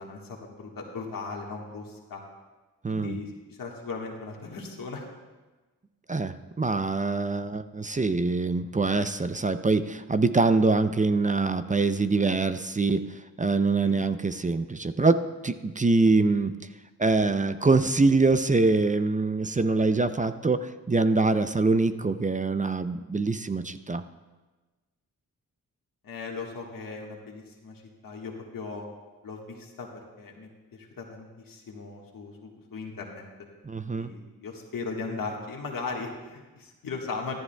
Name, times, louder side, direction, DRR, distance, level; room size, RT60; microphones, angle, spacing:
voice 1, 0.0-2.2 2.9-5.0 13.8-14.0 26.0-28.9 29.2-29.9 30.2-33.2 33.8-37.3, left 4 dB, 75° left, 0 dB, 1.6 m, -38 dB
voice 2, 2.8-3.2 6.1-16.5 17.0-24.0 33.6-34.1, right 3 dB, 25° right, 11 dB, 0.5 m, -24 dB
14.0 x 12.5 x 2.3 m, 1.2 s
cardioid pair, 45°, 34 cm